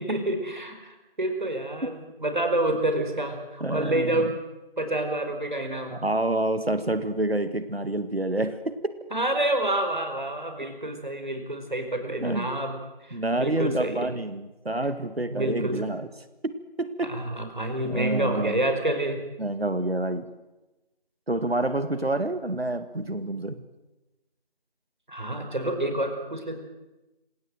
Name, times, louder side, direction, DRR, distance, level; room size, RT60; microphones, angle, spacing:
voice 1, 0.0-4.3 4.8-6.0 9.1-12.8 13.0-14.1 15.3-15.8 17.0-19.2 25.1-26.6, right 1 dB, 50° right, 5 dB, 4.9 m, -28 dB
voice 2, 3.6-4.3 5.9-9.0 12.2-12.5 13.1-16.1 16.4-17.1 17.8-18.6 19.4-20.3 21.3-23.6, right 1 dB, 85° right, 11 dB, 1.9 m, -28 dB
27.5 x 17.5 x 7.8 m, 1.0 s
figure-of-eight pair, 170°, 30 cm